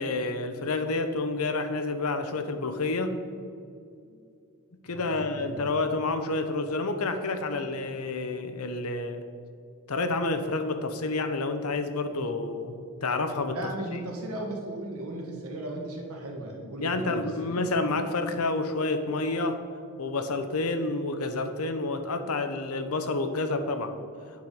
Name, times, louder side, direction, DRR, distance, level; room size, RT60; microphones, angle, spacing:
voice 1, 0.0-3.2 4.8-9.2 9.9-13.7 16.8-19.6 20.0-23.9, left 3 dB, 85° left, 8 dB, 0.8 m, -29 dB
voice 2, 4.9-5.8 7.5-7.6 13.5-17.6, right 1 dB, 85° right, 1 dB, 1.6 m, -37 dB
8.6 x 6.3 x 5.2 m, 2.4 s
head